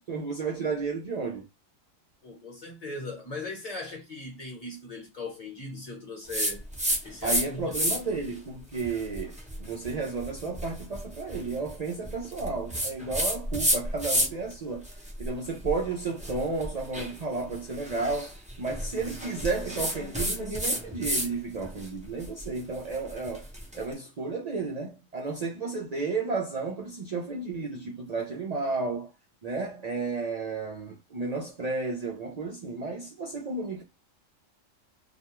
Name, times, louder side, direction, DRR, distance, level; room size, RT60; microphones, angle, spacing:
voice 1, 0.0-1.5 7.2-14.8 15.2-23.4 23.7-29.1 29.4-33.8, right 4 dB, 65° right, 0.4 m, -32 dB
voice 2, 2.2-6.6 7.0-8.0, left 2 dB, 35° left, 0.9 m, -39 dB
sound 1, 6.3-7.4 7.7-8.2 8.7-14.5 14.8-21.3 21.6-23.8, equal, 10° right, 0.5 m, -31 dB
2.4 x 2.2 x 2.9 m
omnidirectional pair, 1.3 m